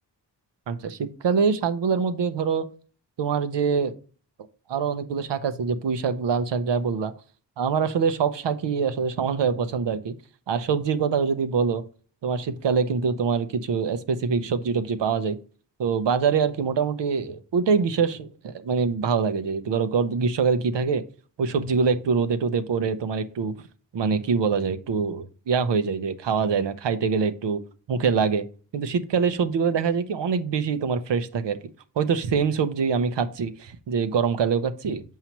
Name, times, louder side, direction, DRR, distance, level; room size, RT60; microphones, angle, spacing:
voice 1, 0.7-2.7 3.2-3.9 4.7-7.1 7.6-10.1 10.5-11.8 12.2-15.4 15.8-21.0 21.4-23.5 23.9-27.6 27.9-28.4 28.7-31.6 32.0-35.0, right 5 dB, 80° right, 0.9 m, -24 dB
7.4 x 5.6 x 3.0 m
cardioid pair, 60°, 42 cm